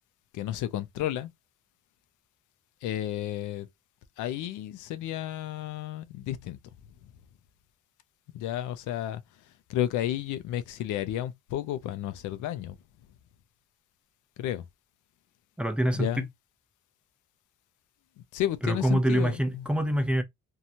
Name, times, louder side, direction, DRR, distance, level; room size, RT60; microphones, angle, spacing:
voice 1, 0.3-1.3 2.8-3.7 4.2-6.6 7.0-7.1 8.3-12.8 14.4-14.7 15.9-16.3 18.2-19.7, left 12 dB, 80° left, 0.5 m, -32 dB
voice 2, 15.6-16.2 18.6-20.2, right 1 dB, 5° right, 0.5 m, -25 dB
2.7 x 2.3 x 2.8 m
cardioid pair, 90°, 30 cm